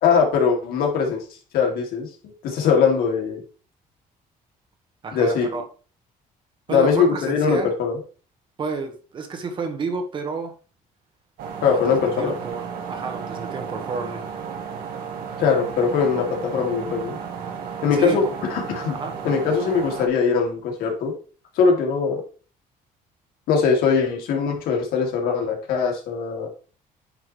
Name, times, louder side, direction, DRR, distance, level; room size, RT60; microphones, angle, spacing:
voice 1, 0.0-1.2 1.5-3.4 5.1-5.5 6.7-8.0 11.6-12.3 15.4-17.2 17.8-18.2 18.5-19.0 19.2-21.1 21.6-22.2 23.5-26.5, left 6 dB, 85° left, 1 dB, 2.7 m, -21 dB
voice 2, 5.0-5.6 6.7-7.7 8.6-10.5 11.7-12.6 12.9-14.2 17.9-18.2 18.9-19.1, right 4 dB, 35° right, 5 dB, 1.5 m, -30 dB
sound 1, 11.4-20.1, right 6 dB, 80° right, 1.9 m, -33 dB
10.0 x 6.0 x 3.3 m, 0.38 s
cardioid pair, 175°, 15 cm